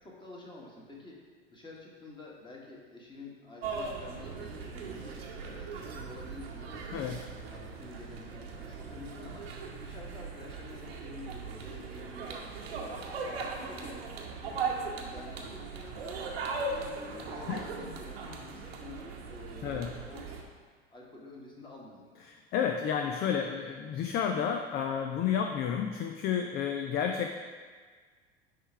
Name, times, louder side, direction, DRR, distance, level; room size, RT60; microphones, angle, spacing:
voice 1, 0.0-9.5 9.8-12.5 12.8-16.2 16.5-20.4 20.9-22.2, left 2 dB, 15° left, -3 dB, 1.7 m, -49 dB
sound 1, 3.6-20.4, right 4 dB, 70° right, 1.1 m, -39 dB
voice 2, 22.3-27.3, left 8 dB, 30° left, 4 dB, 0.5 m, -31 dB
9.9 x 3.3 x 4.6 m, 1.5 s
figure-of-eight pair, 75°, 32 cm